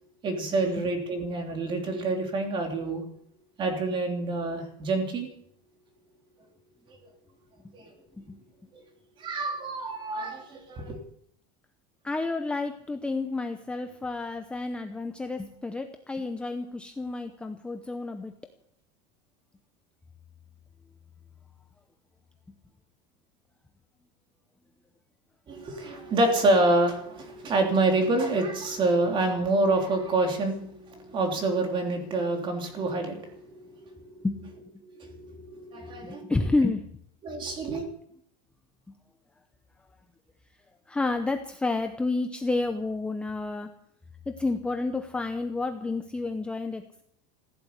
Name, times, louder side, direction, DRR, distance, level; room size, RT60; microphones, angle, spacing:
voice 1, 0.2-3.0 3.6-5.3 7.7-7.9 9.2-11.0 25.5-34.3 34.8-36.3 37.2-37.8, right 2 dB, 25° right, 4 dB, 3.2 m, -27 dB
voice 2, 12.0-18.3 34.2-34.4 36.0-36.8 40.9-43.7 44.3-47.0, left 3 dB, 5° left, 6 dB, 0.7 m, -30 dB
15.5 x 11.0 x 8.0 m, 0.68 s
cardioid pair, 170°, 19 cm